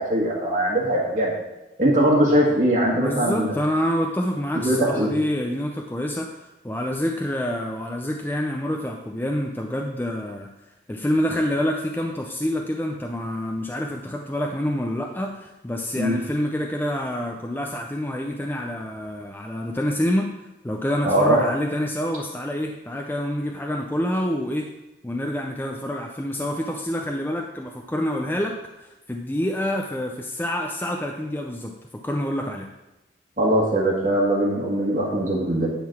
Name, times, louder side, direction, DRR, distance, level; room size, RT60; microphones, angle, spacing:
voice 1, 0.0-1.3 1.8-3.5 4.6-5.1 15.9-16.1 21.0-21.4 33.4-35.7, right 1 dB, 45° right, -5 dB, 1.5 m, -21 dB
voice 2, 2.9-10.5 10.9-20.3 20.6-24.7 25.0-32.7, equal, 10° left, 2 dB, 0.4 m, -27 dB
10.0 x 3.9 x 5.9 m, 0.98 s
head